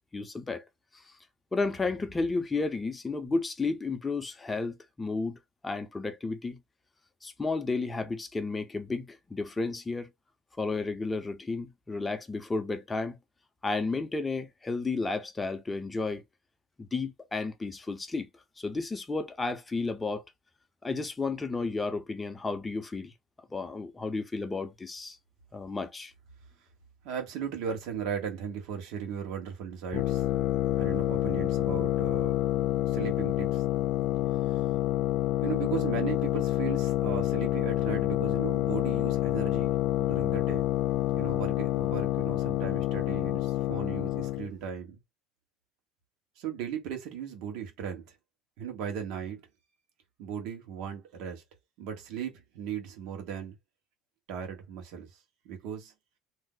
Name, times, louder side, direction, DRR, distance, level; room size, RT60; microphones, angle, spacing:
voice 1, 0.1-0.6 1.5-5.4 5.6-6.6 7.2-10.1 10.6-13.2 13.6-16.2 16.8-18.3 18.6-20.2 20.8-23.1 23.5-25.2 25.5-26.1, left 3 dB, 15° left, 0.5 m, -32 dB
voice 2, 27.0-30.3 30.8-32.3 32.9-33.7 34.5-34.6 35.4-40.6 41.1-45.0 46.4-48.0 48.6-49.4 50.2-51.4 51.8-53.5 54.3-55.1 55.4-55.9, right 8 dB, 70° right, 1.1 m, -37 dB
sound 1, 29.9-44.5, left 13 dB, 65° left, 0.3 m, -28 dB
2.6 x 2.0 x 3.6 m
supercardioid pair, 115°, 0 cm